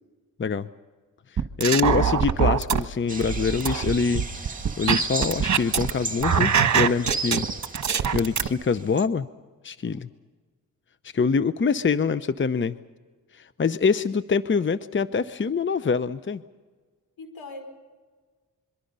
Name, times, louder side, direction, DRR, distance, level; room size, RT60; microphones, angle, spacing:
voice 1, 1.3-7.5 8.1-9.3 9.6-10.1 11.0-12.8 13.3-16.4, left 5 dB, 35° left, 14 dB, 0.8 m, -25 dB
sound 1, 1.4-2.8 3.2-5.9 6.2-8.5, right 7 dB, 50° right, 1.4 m, -23 dB
sound 2, 3.1-9.1, right 3 dB, 20° right, 2.4 m, -34 dB
voice 2, 17.2-17.6, left 2 dB, 75° left, 6 dB, 5.1 m, -41 dB
26.5 x 23.5 x 5.5 m, 1.4 s
supercardioid pair, 50°, 36 cm